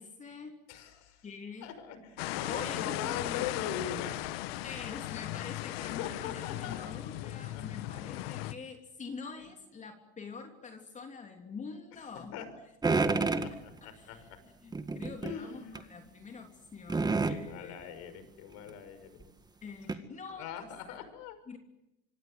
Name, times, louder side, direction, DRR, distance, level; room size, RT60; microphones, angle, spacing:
voice 1, 0.0-0.6 1.2-1.7 2.5-3.2 4.6-12.3 13.1-13.2 13.5-17.8 19.6-21.0 21.5-21.6, left 5 dB, 25° left, 4 dB, 3.1 m, -46 dB
voice 2, 0.7-1.3 1.6-4.2 5.8-6.9 7.2-7.9 8.3-8.4 12.0-12.5 12.9-14.4 15.2-16.1 17.3-19.3 20.4-21.4, left 8 dB, 65° left, 11 dB, 5.9 m, -42 dB
sound 1, 2.2-8.5, left 16 dB, 85° left, 1.2 m, -37 dB
sound 2, 12.8-13.5 14.7-15.4 15.7-15.8 16.9-17.4 18.7-18.8 19.2-19.3 19.9-20.0, right 3 dB, 15° right, 1.8 m, -29 dB
26.0 x 25.0 x 8.0 m, 0.86 s
supercardioid pair, 125°, 29 cm